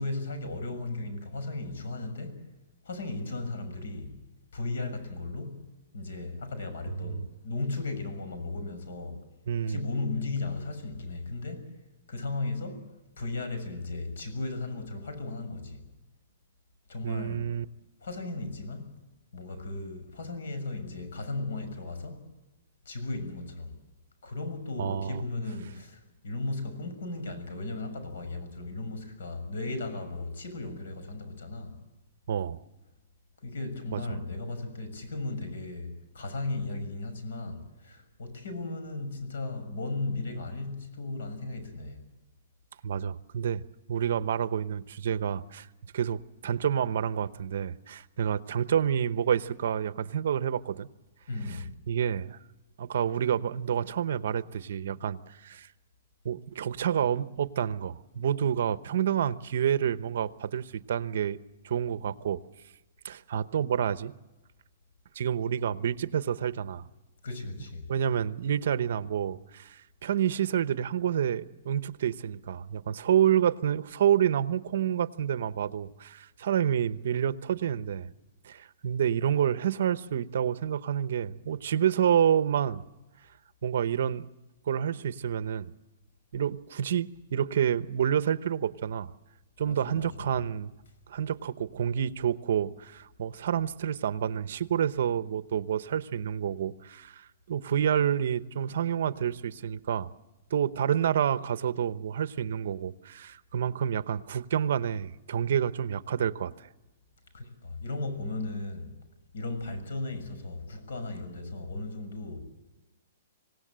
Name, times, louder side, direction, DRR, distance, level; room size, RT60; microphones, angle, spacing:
voice 1, 0.0-2.4 2.8-4.2 4.5-5.6 5.9-9.2 9.6-11.7 12.1-12.8 13.2-15.8 16.9-17.4 18.0-18.8 19.3-22.2 22.8-23.8 24.2-31.8 33.4-42.0 51.3-51.7 67.2-67.8 89.6-90.3 107.3-108.9 109.3-112.5, left 2 dB, 80° left, 10 dB, 6.6 m, -36 dB
voice 2, 9.5-9.8 17.0-17.6 24.8-25.2 32.3-32.6 33.9-34.2 42.8-43.6 43.9-45.7 45.9-50.9 51.5-51.6 51.9-52.4 52.8-55.7 56.2-61.4 61.6-62.4 63.0-64.1 65.1-66.9 67.9-78.1 78.4-82.8 83.6-84.3 84.7-85.7 86.3-89.1 89.6-90.7 91.1-100.1 100.5-106.7, right 9 dB, 60° right, 14 dB, 0.9 m, -28 dB
26.0 x 17.5 x 7.6 m, 1.1 s
hypercardioid pair, 170°, 0 cm